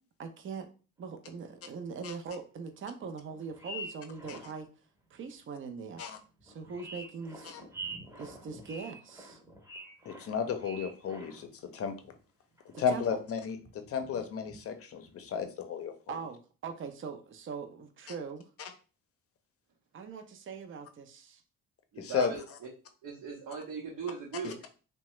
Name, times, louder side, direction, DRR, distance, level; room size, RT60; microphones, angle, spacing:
voice 1, 0.2-0.7 1.0-4.7 5.1-6.0 6.4-7.5 8.2-9.4 12.7-13.0 16.1-18.5 19.9-21.4, right 5 dB, 40° right, 6 dB, 0.5 m, -41 dB
sound 1, 1.4-1.5 1.8-1.9 2.8-2.9 3.3-4.7 5.2-5.3 6.0-6.1 6.4-11.6 11.8-12.1 12.6-13.2 13.5-14.6 15.0-15.4, right 1 dB, 10° right, 0.8 m, -46 dB
voice 2, 10.0-11.9 12.8-15.9 22.0-22.3 24.4-24.7, left 7 dB, 50° left, 7 dB, 0.6 m, -33 dB
voice 3, 21.9-22.4 23.0-24.5, right 6 dB, 70° right, -3 dB, 0.8 m, -38 dB
2.8 x 2.2 x 3.1 m, 0.36 s
cardioid pair, 90°, 30 cm